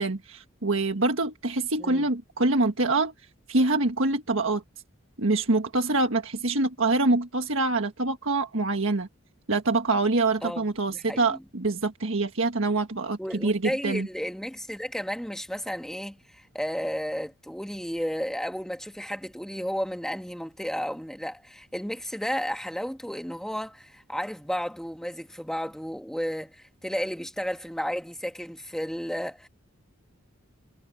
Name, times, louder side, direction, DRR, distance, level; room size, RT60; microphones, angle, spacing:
voice 1, 0.0-3.1 3.5-4.6 5.2-9.1 9.5-14.1, right 2 dB, 70° right, 1.6 m, -25 dB
voice 2, 1.8-2.1 10.4-11.4 13.2-29.5, equal, ahead, 1.6 m, -33 dB
head